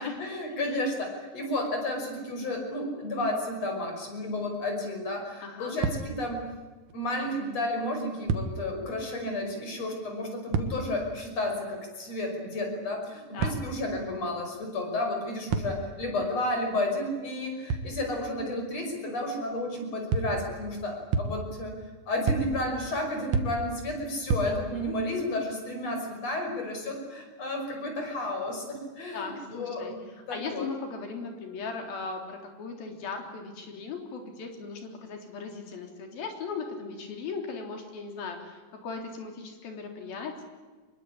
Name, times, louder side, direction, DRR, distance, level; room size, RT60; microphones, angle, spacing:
voice 1, 0.0-6.4 6.9-21.7 22.1-30.0 30.3-30.7, left 1 dB, 45° left, 3 dB, 6.8 m, -32 dB
voice 2, 5.4-5.8 13.3-13.6 24.4-25.0 29.1-29.9 30.3-40.4, left 4 dB, 85° left, 4 dB, 5.3 m, -38 dB
sound 1, 5.8-6.4 6.9-7.0 8.3-8.9 10.5-11.1 13.4-14.0 15.5-16.1 17.7-18.2 20.1-20.6 21.1-21.7 22.3-22.9 23.3-23.9 24.3-24.9, right 4 dB, 65° right, 3.0 m, -31 dB
25.5 x 21.5 x 10.0 m, 1.3 s
omnidirectional pair, 4.1 m